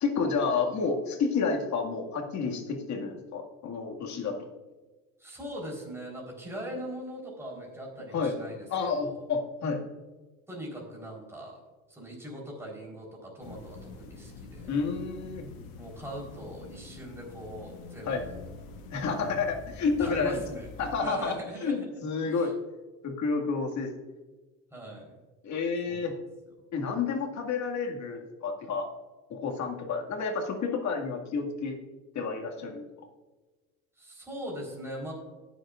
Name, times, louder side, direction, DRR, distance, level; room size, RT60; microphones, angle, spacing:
voice 1, 0.0-4.5 8.1-8.3 8.7-9.8 14.7-15.5 18.0-18.3 18.9-20.4 20.8-22.5 23.0-23.9 25.4-26.1 26.7-28.9 29.3-31.8 32.2-32.8, left 4 dB, 45° left, 2 dB, 2.1 m, -30 dB
voice 2, 5.2-8.6 9.0-9.1 10.5-11.6 11.9-14.7 15.8-18.1 20.0-20.7 21.0-21.9 22.2-22.5 24.7-25.2 25.9-26.1 34.0-35.1, equal, 5° right, -2 dB, 3.9 m, -40 dB
sound 1, 13.4-21.0, left 4 dB, 60° left, 1.7 m, -46 dB
19.5 x 7.6 x 2.5 m, 1.2 s
supercardioid pair, 100°, 40 cm